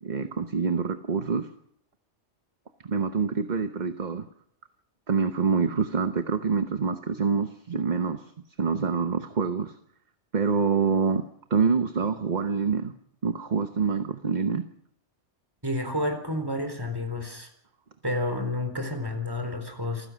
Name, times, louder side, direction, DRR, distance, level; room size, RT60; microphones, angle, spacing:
voice 1, 0.0-1.5 2.8-4.3 5.1-8.3 8.6-9.8 10.3-11.2 11.5-12.9 13.2-14.6, right 5 dB, 40° right, 8 dB, 1.1 m, -26 dB
voice 2, 15.6-17.5 18.0-20.1, left 1 dB, 20° right, 6 dB, 4.2 m, -30 dB
28.0 x 15.5 x 6.3 m, 0.71 s
omnidirectional pair, 1.2 m